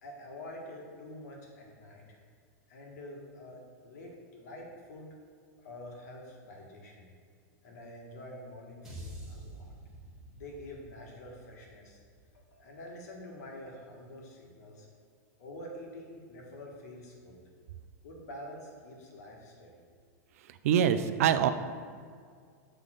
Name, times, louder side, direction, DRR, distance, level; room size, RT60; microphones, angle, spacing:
voice 1, 0.0-2.2 2.7-5.1 5.6-7.1 7.6-9.7 10.4-12.0 12.3-14.9 15.4-17.4 18.0-19.7, left 1 dB, 70° left, -1 dB, 1.7 m, -47 dB
sound 1, 8.8-13.2, right 1 dB, 5° right, 1.3 m, -48 dB
voice 2, 20.6-21.5, right 9 dB, 55° right, 11 dB, 0.4 m, -24 dB
6.6 x 3.7 x 6.3 m, 2.1 s
supercardioid pair, 175°, 9 cm